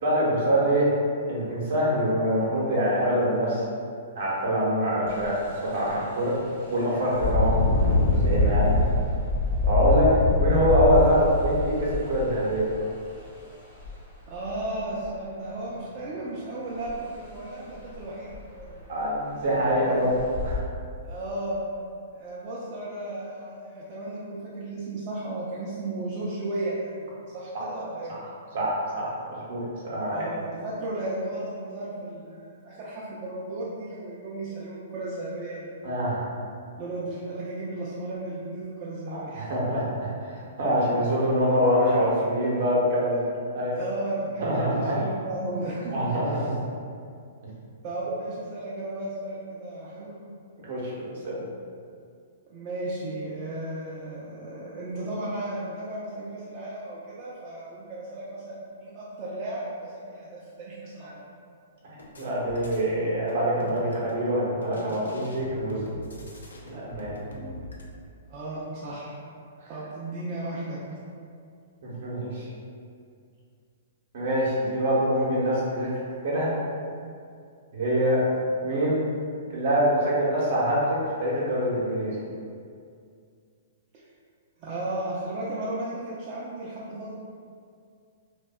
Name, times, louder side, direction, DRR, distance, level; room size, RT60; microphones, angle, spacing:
voice 1, 0.0-0.9 1.3-3.6 4.1-6.3 6.7-7.6 8.0-8.8 9.6-10.1 10.4-12.7 18.9-20.1 20.4-20.6 27.5-27.6 28.1-28.2 28.5-30.2 35.8-36.3 39.1-43.2 43.5-43.8 44.4-45.0 45.9-46.5 50.6-51.4 62.2-65.8 66.6-67.1 69.6-69.7 71.8-72.5 74.1-75.9 76.2-76.5 77.7-78.2 78.6-79.0 79.5-82.2, equal, 60° right, -6 dB, 0.8 m, -25 dB
Engine, 5.1-5.3 5.8-5.9 7.1-12.9 13.8-13.9 14.3-15.1 16.9-17.0 17.4-17.5 17.9-18.0 18.3-18.8 19.4-19.5 20.1-20.6, left 2 dB, 50° left, 0.8 m, -24 dB
voice 2, 14.3-18.8 19.5-19.6 21.0-21.6 22.1-28.1 30.1-35.8 36.8-39.5 43.8-45.9 46.3-46.4 47.8-50.1 52.5-61.2 67.4-67.5 68.3-69.1 69.7-71.0 84.6-87.1, right 1 dB, 40° right, -8 dB, 0.4 m, -34 dB
sound 1, 62.0-62.9 63.3-64.2 64.6-67.8, left 1 dB, 85° left, 0.4 m, -42 dB
2.6 x 2.2 x 2.2 m, 2.3 s
hypercardioid pair, 120°, 0 cm